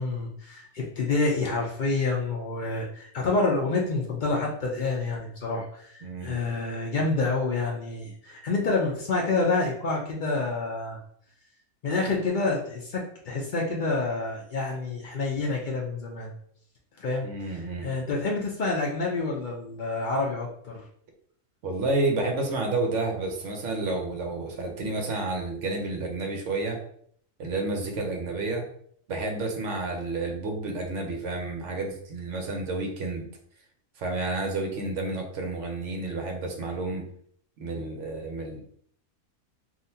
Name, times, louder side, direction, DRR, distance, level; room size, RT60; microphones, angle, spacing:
voice 1, 0.0-11.0 11.8-16.3 17.0-20.8, left 3 dB, 80° left, -1 dB, 0.4 m, -28 dB
voice 2, 6.0-6.4 17.2-17.9 21.6-26.8 27.4-28.6 29.1-33.3 34.0-37.0 37.6-38.6, right 2 dB, 60° right, 3 dB, 1.0 m, -30 dB
3.7 x 2.5 x 2.7 m, 0.63 s
omnidirectional pair, 1.5 m